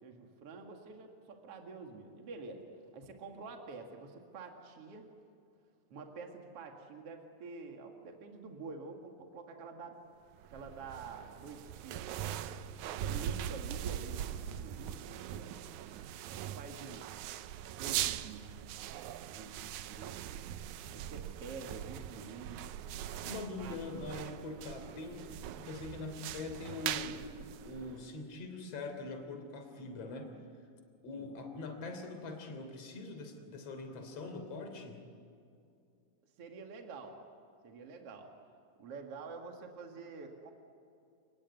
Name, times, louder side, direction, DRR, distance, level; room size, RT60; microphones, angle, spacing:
voice 1, 0.0-5.0 5.9-10.0 10.5-12.1 12.9-15.6 16.5-17.1 17.8-18.4 19.3-20.5 20.9-22.7 23.6-24.1 31.1-31.3 36.4-37.2 37.6-38.3 38.8-40.5, right 4 dB, 50° right, 3 dB, 3.0 m, -48 dB
sound 1, 10.4-28.2, right 11 dB, 80° right, 2.1 m, -41 dB
voice 2, 23.2-27.3 27.7-30.3 31.0-35.0, left 3 dB, 55° left, 5 dB, 4.2 m, -43 dB
30.0 x 19.5 x 9.5 m, 2.5 s
omnidirectional pair, 3.5 m